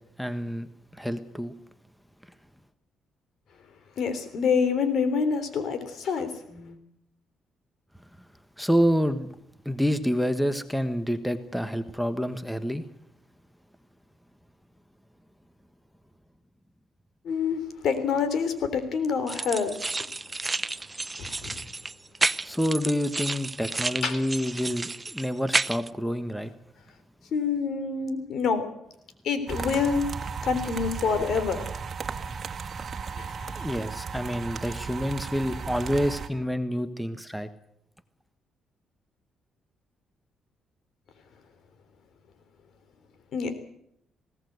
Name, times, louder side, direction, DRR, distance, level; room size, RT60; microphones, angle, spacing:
voice 1, 0.2-0.7 1.0-1.5 8.6-9.3 9.6-12.8 22.4-26.5 33.6-37.5, equal, ahead, 1.4 m, -28 dB
voice 2, 4.0-6.8 17.2-19.9 21.2-21.6 24.0-24.2 27.3-28.6 29.2-30.0 30.4-31.6 33.2-33.6 43.3-43.5, left 5 dB, 65° left, 3.4 m, -27 dB
sound 1, 19.3-25.9, right 3 dB, 20° right, 0.7 m, -31 dB
sound 2, 29.5-36.3, right 5 dB, 45° right, 2.2 m, -35 dB
20.0 x 17.5 x 8.1 m
cardioid pair, 90°, 0 cm